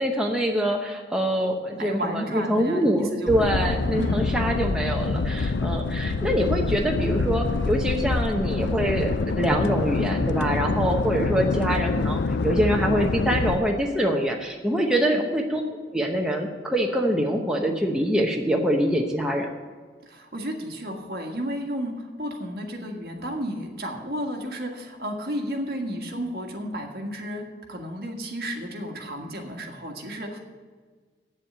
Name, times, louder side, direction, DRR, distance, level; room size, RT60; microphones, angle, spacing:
voice 1, 0.0-15.6 15.9-19.5, equal, 5° right, 0 dB, 0.9 m, -24 dB
voice 2, 1.7-3.7 4.0-4.2 14.9-15.2 20.0-30.4, equal, 55° right, 2 dB, 1.7 m, -32 dB
sound 1, 3.3-13.6, left 3 dB, 85° left, 0.5 m, -26 dB
8.5 x 7.5 x 9.0 m, 1.5 s
head